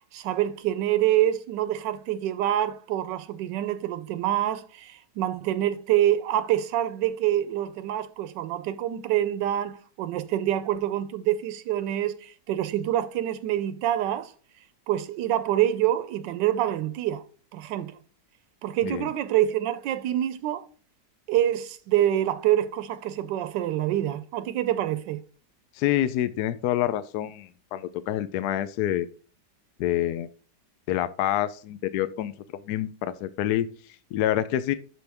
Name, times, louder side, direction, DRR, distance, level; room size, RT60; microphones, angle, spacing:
voice 1, 0.1-14.3 14.9-17.2 17.5-18.0 18.6-20.6 21.3-25.2, right 12 dB, 90° right, 1.3 m, -26 dB
voice 2, 25.8-29.1 29.8-30.3 30.9-32.3 32.6-33.7 34.1-34.7, left 12 dB, 70° left, 1.1 m, -27 dB
11.5 x 4.7 x 3.4 m
omnidirectional pair, 1.9 m